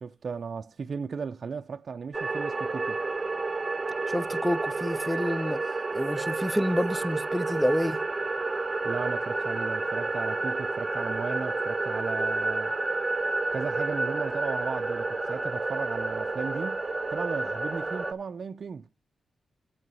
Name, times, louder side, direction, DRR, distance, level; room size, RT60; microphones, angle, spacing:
voice 1, 0.0-3.0 8.8-12.8 13.5-16.9 17.1-18.9, right 5 dB, 55° right, 0.5 m, -36 dB
sound 1, 2.1-18.1, right 3 dB, 25° right, 1.0 m, -30 dB
voice 2, 4.1-5.6 5.9-8.0, equal, ahead, 0.6 m, -28 dB
9.4 x 7.7 x 5.5 m
cardioid pair, 90°, 0 cm